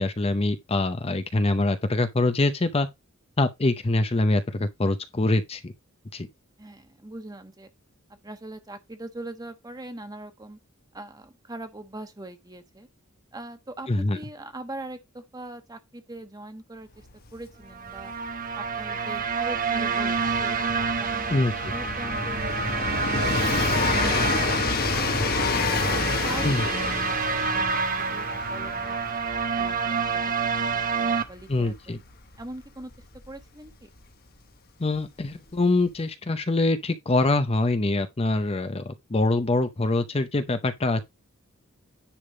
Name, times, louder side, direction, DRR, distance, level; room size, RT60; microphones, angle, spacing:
voice 1, 0.0-2.9 3.4-5.7 6.1-6.3 13.9-14.2 21.3-21.5 26.4-26.7 31.5-32.0 34.8-41.0, left 2 dB, 30° left, 0.6 m, -24 dB
voice 2, 6.6-7.7 8.2-10.6 10.9-12.9 13.3-18.1 18.6-21.4 21.7-23.5 23.9-25.6 25.9-29.0 29.5-32.0 32.4-32.9 33.3-33.9, right 2 dB, 20° right, 1.2 m, -42 dB
Train, 17.1-17.2 17.4-34.0 35.0-35.1, left 4 dB, 45° left, 1.2 m, -30 dB
sound 1, 17.7-31.2, right 5 dB, 40° right, 0.9 m, -28 dB
10.0 x 3.5 x 5.2 m
head